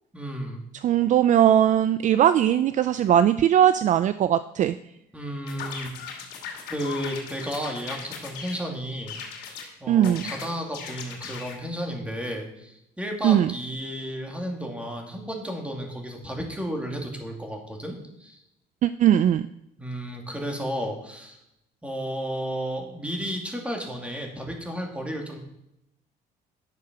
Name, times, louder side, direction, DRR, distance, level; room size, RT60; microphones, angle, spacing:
voice 1, 0.1-0.6 5.1-5.9 6.7-9.2 9.8-18.4 19.8-21.4 21.8-25.4, equal, 5° right, 1 dB, 2.3 m, -33 dB
voice 2, 0.8-4.8 9.9-10.2 13.2-13.5 18.8-19.5, right 10 dB, 45° right, 13 dB, 0.4 m, -19 dB
sound 1, 5.5-8.6 9.1-9.7 10.0-11.6, left 6 dB, 85° left, 2.6 m, -38 dB
10.5 x 6.5 x 6.0 m, 0.83 s
cardioid pair, 110°, 17 cm